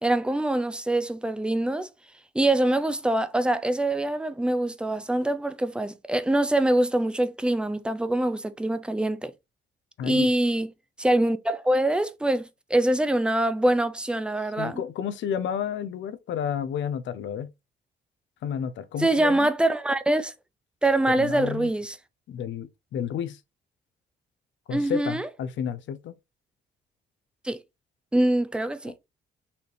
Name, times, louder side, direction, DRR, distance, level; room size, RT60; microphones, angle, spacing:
voice 1, 0.0-1.9 2.3-9.3 10.0-10.7 11.0-14.8 19.0-20.3 20.8-22.0 24.7-25.3 27.4-27.6 28.1-28.9, right 1 dB, 5° right, 0.5 m, -24 dB
voice 2, 10.0-10.3 14.6-17.5 18.4-19.5 21.2-21.7 22.3-23.4 24.7-26.1, left 8 dB, 70° left, 0.6 m, -31 dB
4.2 x 2.8 x 3.2 m
cardioid pair, 90°, 20 cm